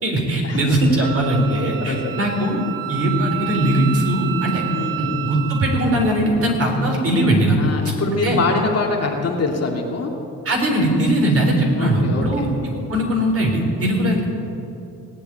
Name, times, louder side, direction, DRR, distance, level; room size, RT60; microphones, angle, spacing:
voice 1, 0.0-2.6 2.9-4.6 5.0-7.7 8.2-8.4 10.4-12.5 12.9-14.3, right 1 dB, 40° right, 1 dB, 4.0 m, -19 dB
Wind instrument woodwind instrument, 1.0-6.2, right 15 dB, 80° right, 1.0 m, -30 dB
voice 2, 1.5-2.2 4.7-5.3 7.6-10.1 11.8-12.5, left 3 dB, 50° left, 0 dB, 2.4 m, -24 dB
18.0 x 8.2 x 8.8 m, 2.8 s
cardioid pair, 85°, 34 cm